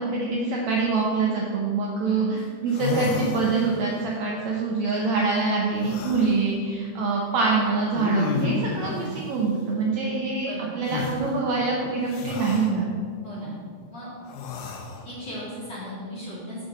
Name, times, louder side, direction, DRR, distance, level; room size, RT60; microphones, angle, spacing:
voice 1, 0.0-12.9, right 4 dB, 75° right, -2 dB, 1.7 m, -25 dB
sound 1, 2.4-2.5 2.7-3.9 5.8-6.4 7.9-8.8 10.9-11.2 12.1-12.7 14.3-15.1, left 4 dB, 80° left, 2.6 m, -30 dB
voice 2, 15.0-16.6, left 1 dB, 35° left, -9 dB, 2.3 m, -36 dB
7.7 x 6.3 x 5.5 m, 2.1 s
omnidirectional pair, 4.1 m